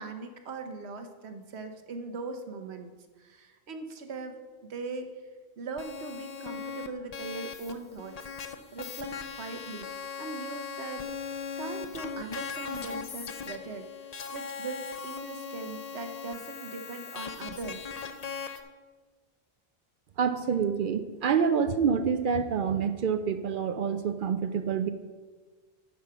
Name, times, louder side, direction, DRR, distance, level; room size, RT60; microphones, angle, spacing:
voice 1, 0.0-2.9 3.2-4.4 4.6-5.1 5.6-9.9 10.2-13.9 14.3-17.9, right 3 dB, 80° right, 6 dB, 1.2 m, -40 dB
sound 1, 5.8-18.6, left 6 dB, 45° left, 0.6 m, -39 dB
voice 2, 20.2-24.9, right 6 dB, 60° right, 10 dB, 0.6 m, -27 dB
9.3 x 6.4 x 5.7 m, 1.4 s
omnidirectional pair, 1.1 m